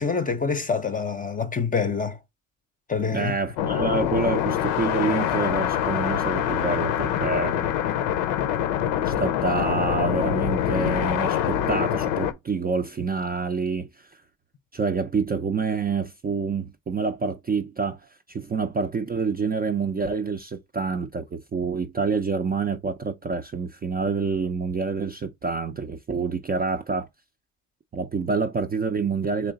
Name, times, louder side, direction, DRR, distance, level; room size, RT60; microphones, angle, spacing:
voice 1, 0.0-2.2 2.9-3.3, left 5 dB, 20° left, 0.6 m, -26 dB
voice 2, 3.1-7.7 9.0-14.1 14.7-18.0 18.3-27.1 27.9-29.5, right 4 dB, 20° right, 0.5 m, -27 dB
sound 1, 3.6-12.3, left 10 dB, 75° left, 0.7 m, -25 dB
3.3 x 3.0 x 3.9 m
hypercardioid pair, 70°, 44 cm